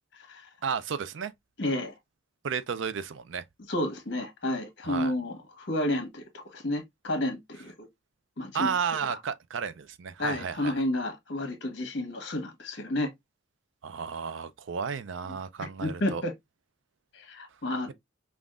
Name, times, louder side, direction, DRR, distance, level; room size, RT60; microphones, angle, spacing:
voice 1, 0.6-1.3 2.4-3.4 4.8-5.1 8.5-10.7 13.8-16.2, right 6 dB, 65° right, 0.4 m, -32 dB
voice 2, 1.6-1.9 3.7-7.9 8.4-8.8 10.2-13.1 15.3-15.4 15.8-16.3 17.1-17.9, left 1 dB, 55° left, 1.2 m, -31 dB
5.3 x 2.5 x 2.4 m
head